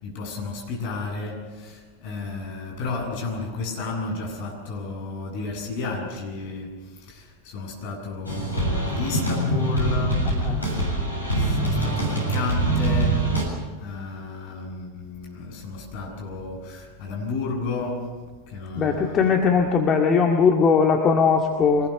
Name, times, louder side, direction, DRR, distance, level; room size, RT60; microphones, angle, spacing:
voice 1, 0.0-10.8 11.3-19.3, left 3 dB, 50° left, 1 dB, 7.6 m, -32 dB
sound 1, 8.2-13.4, right 1 dB, 85° left, 7.2 m, -24 dB
voice 2, 10.3-10.6 18.8-21.9, left 5 dB, 25° left, 2 dB, 2.0 m, -20 dB
25.0 x 20.0 x 6.9 m, 1.4 s
figure-of-eight pair, 90°, 0 cm